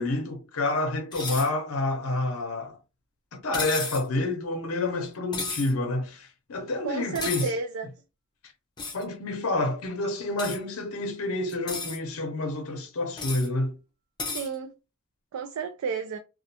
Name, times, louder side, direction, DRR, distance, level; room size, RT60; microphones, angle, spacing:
voice 1, 0.0-2.8 3.3-7.5 8.9-13.8, left 2 dB, 90° left, 0.6 m, -29 dB
sound 1, 1.1-1.5 3.5-4.1 5.3-5.7 7.2-7.5 8.8-9.0 10.4-10.6 11.5-12.0 13.2-13.5 14.2-14.5, left 3 dB, 20° left, 0.6 m, -33 dB
voice 2, 6.8-7.9 14.3-14.7 15.3-16.2, right 5 dB, 80° right, 0.4 m, -32 dB
2.4 x 2.2 x 2.7 m
head